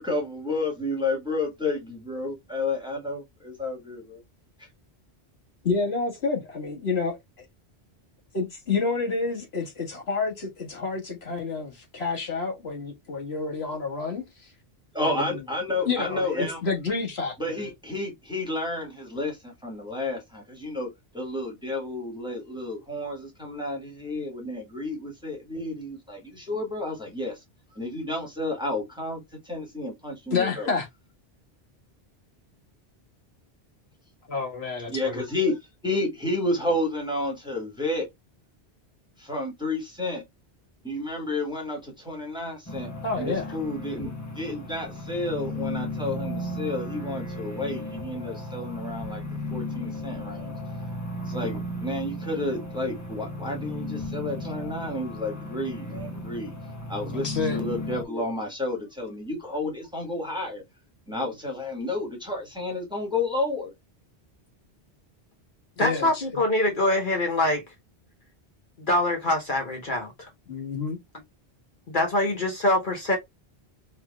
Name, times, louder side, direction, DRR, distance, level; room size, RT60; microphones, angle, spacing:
voice 1, 0.0-4.2 14.9-16.6 17.4-20.9 21.1-27.4 27.7-30.7 34.9-35.6 35.8-38.1 39.2-40.2 40.8-42.9 43.2-44.1 44.3-49.2 49.5-50.5 51.2-56.5 56.9-60.6 61.1-63.7, left 2 dB, 5° right, 1.6 m, -31 dB
voice 2, 5.6-7.4 8.3-14.5 15.0-15.4 15.8-17.7 30.3-30.9 34.3-35.2 43.0-43.6 57.1-57.6 65.8-66.2 70.5-71.0, left 4 dB, 75° left, 1.8 m, -29 dB
sound 1, 42.7-58.0, left 1 dB, 20° left, 0.6 m, -35 dB
voice 3, 65.8-67.6 68.9-70.3 71.9-73.2, left 1 dB, 50° left, 1.2 m, -24 dB
5.5 x 3.3 x 2.2 m
omnidirectional pair, 1.1 m